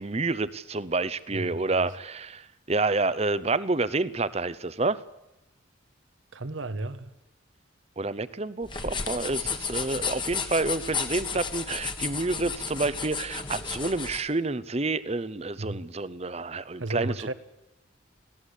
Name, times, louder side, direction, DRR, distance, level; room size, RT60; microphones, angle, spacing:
voice 1, 0.0-5.0 8.0-17.3, right 3 dB, 30° right, 0.8 m, -29 dB
voice 2, 1.3-1.9 6.3-7.1 15.6-15.8 16.8-17.3, right 2 dB, 70° right, 1.2 m, -34 dB
sound 1, 8.6-14.2, left 5 dB, 25° left, 1.5 m, -33 dB
23.5 x 16.5 x 8.2 m
head